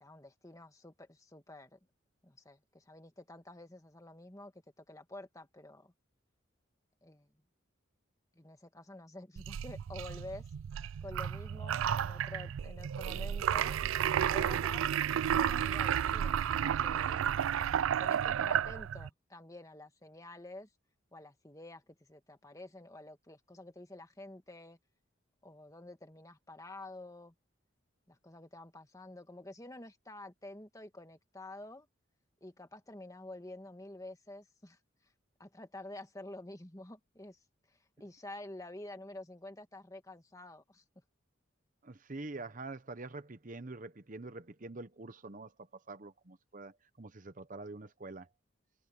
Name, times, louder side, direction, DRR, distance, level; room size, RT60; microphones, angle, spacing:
voice 1, 0.0-1.8 2.2-4.5 4.8-5.9 7.0-7.3 8.3-10.5 11.0-13.8 14.3-14.8 15.3-17.2 18.0-20.7 21.1-24.8 25.4-27.3 28.1-31.9 32.4-34.8 35.4-37.4 37.7-40.8, left 1 dB, 15° left, 1.6 m, -49 dB
sound 1, 9.4-19.1, right 9 dB, 80° right, 0.3 m, -32 dB
voice 2, 41.8-48.3, right 2 dB, 40° right, 0.9 m, -46 dB
head